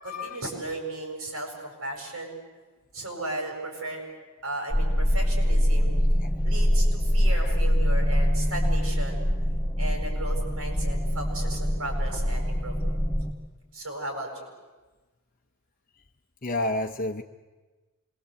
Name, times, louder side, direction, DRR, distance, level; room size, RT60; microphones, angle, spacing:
voice 1, 0.0-2.4 2.9-4.0 4.4-6.0 6.4-9.3 9.8-13.0 13.7-14.5, right 2 dB, 85° right, 1 dB, 7.7 m, -35 dB
sound 1, 4.7-13.3, equal, 15° left, 1.5 m, -24 dB
voice 2, 16.4-17.2, left 2 dB, 40° left, 5 dB, 0.7 m, -29 dB
26.5 x 22.5 x 8.3 m, 1.3 s
head